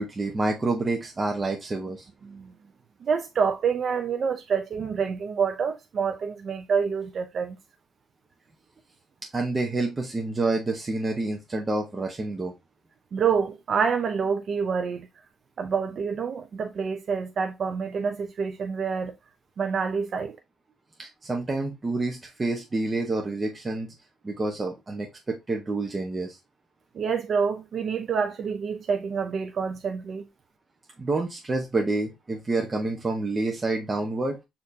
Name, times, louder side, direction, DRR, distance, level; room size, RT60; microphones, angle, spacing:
voice 1, 0.0-2.1 9.3-12.5 21.0-23.9 24.2-26.4 31.0-34.4, right 2 dB, 25° right, 0.8 m, -28 dB
voice 2, 3.0-7.6 13.1-15.1 15.6-19.1 19.6-20.3 27.0-30.2, right 6 dB, 55° right, 0.5 m, -27 dB
6.4 x 2.8 x 2.7 m
cardioid pair, 90°, 0 cm